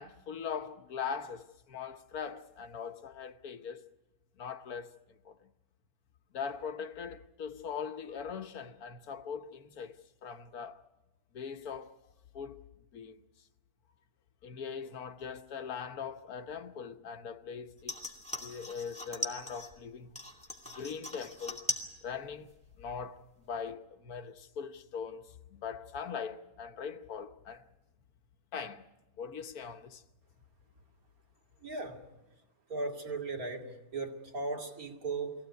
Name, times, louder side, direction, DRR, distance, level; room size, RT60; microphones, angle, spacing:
voice 1, 0.0-3.8 4.4-5.5 6.3-10.8 11.3-12.0 12.3-12.6 12.9-13.2 14.4-18.0 18.4-20.2 20.7-21.6 22.0-22.5 22.8-27.6 28.5-28.8 29.2-30.0, left 6 dB, 85° left, 1.5 m, -41 dB
sound 1, 17.8-19.8 20.2-21.9 22.2-22.8 23.2-23.3, left 2 dB, 5° left, 2.4 m, -39 dB
voice 2, 31.6-32.0 32.7-33.7 33.9-35.3, right 3 dB, 75° right, 2.9 m, -37 dB
23.5 x 16.5 x 9.4 m
omnidirectional pair, 1.5 m